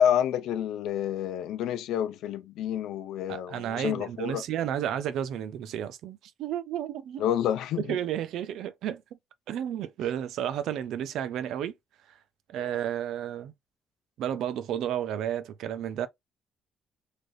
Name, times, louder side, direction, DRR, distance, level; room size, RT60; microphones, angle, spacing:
voice 1, 0.0-4.4 7.2-7.9 12.6-12.7, left 10 dB, 85° left, 0.5 m, -28 dB
voice 2, 3.3-7.3 7.8-9.0 9.5-11.7 12.1-12.2 12.5-13.5 14.2-16.1, right 10 dB, 80° right, 0.4 m, -32 dB
3.2 x 2.4 x 2.6 m
cardioid pair, 90°, 0 cm